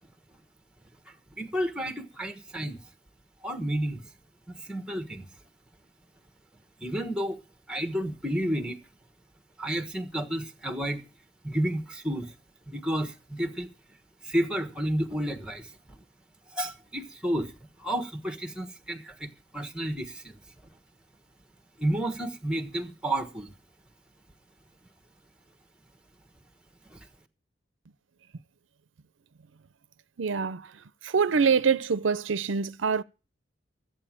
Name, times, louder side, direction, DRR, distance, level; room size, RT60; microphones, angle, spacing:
voice 1, 1.4-2.8 3.4-4.0 4.5-5.3 6.8-7.4 7.7-8.8 9.6-11.0 11.4-12.3 12.7-13.7 14.2-15.7 16.5-17.5 17.8-20.3 21.8-23.5 26.9-27.1, right 1 dB, 5° right, 1.2 m, -31 dB
voice 2, 30.2-30.7 31.0-33.0, right 5 dB, 75° right, 0.6 m, -25 dB
13.5 x 8.3 x 7.4 m
head